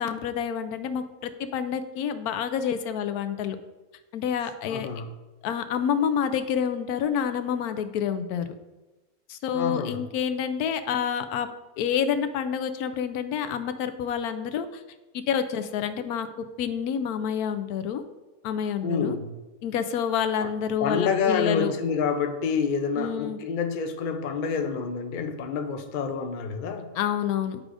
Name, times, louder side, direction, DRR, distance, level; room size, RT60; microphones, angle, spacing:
voice 1, 0.0-3.6 4.1-4.9 5.4-8.5 9.3-11.5 11.8-14.8 15.1-16.3 16.6-18.0 18.4-19.2 19.6-21.7 23.0-23.4 26.9-27.6, left 8 dB, 85° left, 10 dB, 1.1 m, -28 dB
voice 2, 4.7-5.1 9.5-10.0 18.8-19.3 20.4-20.5 20.8-26.9, left 5 dB, 55° left, 6 dB, 0.5 m, -28 dB
11.0 x 4.8 x 2.5 m, 1.1 s
omnidirectional pair, 1.6 m